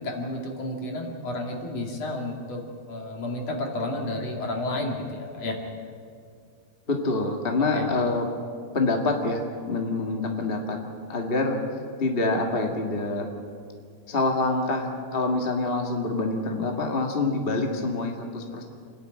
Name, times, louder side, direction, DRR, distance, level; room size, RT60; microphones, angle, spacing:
voice 1, 0.0-5.6 7.7-7.9, left 1 dB, 50° left, 0 dB, 3.4 m, -31 dB
voice 2, 6.9-8.3 8.7-10.8 11.1-11.6 12.0-13.3 14.1-18.6, left 3 dB, 30° left, 2 dB, 1.1 m, -26 dB
28.0 x 11.5 x 9.0 m, 2.3 s
omnidirectional pair, 4.0 m